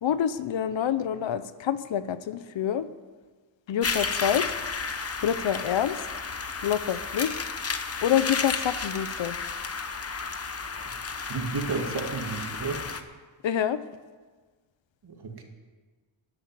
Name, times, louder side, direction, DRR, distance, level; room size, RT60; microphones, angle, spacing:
voice 1, 0.0-2.9 3.7-4.5 5.2-6.0 6.6-7.4 8.0-9.4 13.4-13.8, left 9 dB, 70° left, 13 dB, 0.8 m, -27 dB
sound 1, 3.8-13.0, left 5 dB, 30° left, 0.9 m, -32 dB
voice 2, 11.3-12.8 15.0-15.4, right 4 dB, 55° right, 3 dB, 2.3 m, -32 dB
13.0 x 8.3 x 9.5 m, 1.4 s
wide cardioid pair, 120°, 47 cm